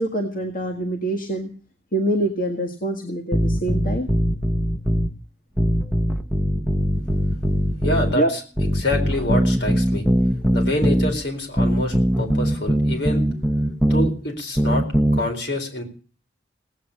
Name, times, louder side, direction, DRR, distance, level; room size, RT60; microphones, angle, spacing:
voice 1, 0.0-1.5 1.9-4.1 8.1-8.3, right 1 dB, 50° left, 3 dB, 1.9 m, -24 dB
sound 1, 3.3-5.1 5.6-8.2 8.6-11.1 11.6-14.1 14.6-15.2, equal, ahead, 0.9 m, -20 dB
voice 2, 7.8-8.2 8.8-10.1 10.5-13.3 13.9-14.8 15.1-15.8, left 1 dB, 65° left, 3 dB, 4.3 m, -26 dB
18.0 x 8.8 x 6.6 m, 0.39 s
head